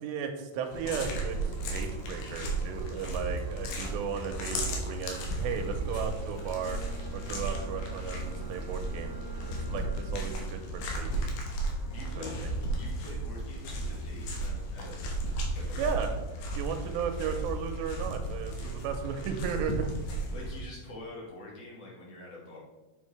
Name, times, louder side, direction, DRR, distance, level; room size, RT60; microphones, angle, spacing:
voice 1, 0.0-6.8 7.1-9.2 9.5-11.3 12.2-12.3 15.8-16.1 16.6-19.9, right 7 dB, 90° right, 5 dB, 2.9 m, -35 dB
Engine, 0.5-9.9, right 4 dB, 70° right, 2.3 m, -51 dB
sound 1, 0.7-20.6, right 2 dB, 70° left, 3.0 m, -34 dB
Bowed string instrument, 6.4-10.6, left 1 dB, 45° right, 1.6 m, -49 dB
voice 2, 11.9-15.0 15.5-16.0 16.5-16.8 20.3-22.6, left 2 dB, 50° left, -4 dB, 2.0 m, -45 dB
7.3 x 6.9 x 3.2 m, 1.1 s
omnidirectional pair, 5.0 m